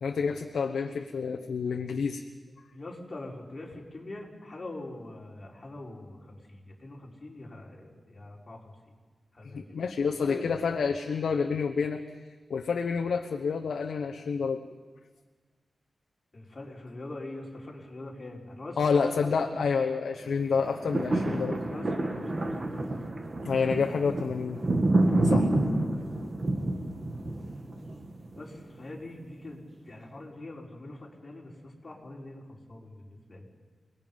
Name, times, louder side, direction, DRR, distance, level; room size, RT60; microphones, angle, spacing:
voice 1, 0.0-2.2 9.5-12.0 12.5-14.6 18.8-21.6 23.4-24.6 25.2-25.5, left 5 dB, 80° left, 3 dB, 1.1 m, -28 dB
voice 2, 2.7-8.6 9.3-9.8 10.2-10.4 16.3-19.3 21.6-23.0 28.3-33.5, left 2 dB, 35° left, -2 dB, 4.4 m, -43 dB
sound 1, 20.5-28.8 29.3-29.4, right 2 dB, 35° right, 2.1 m, -29 dB
29.0 x 19.5 x 5.4 m, 1.4 s
wide cardioid pair, 105°, 0 cm